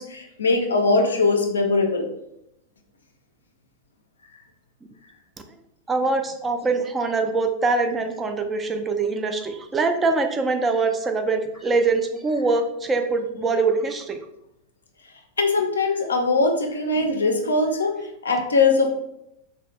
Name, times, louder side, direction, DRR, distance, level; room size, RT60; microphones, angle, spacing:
voice 1, 0.0-2.1 15.4-18.9, left 3 dB, 70° left, 4 dB, 0.4 m, -21 dB
voice 2, 5.9-14.2, right 3 dB, 20° right, 6 dB, 0.3 m, -23 dB
3.2 x 2.1 x 2.8 m, 0.80 s
figure-of-eight pair, 90°, 0 cm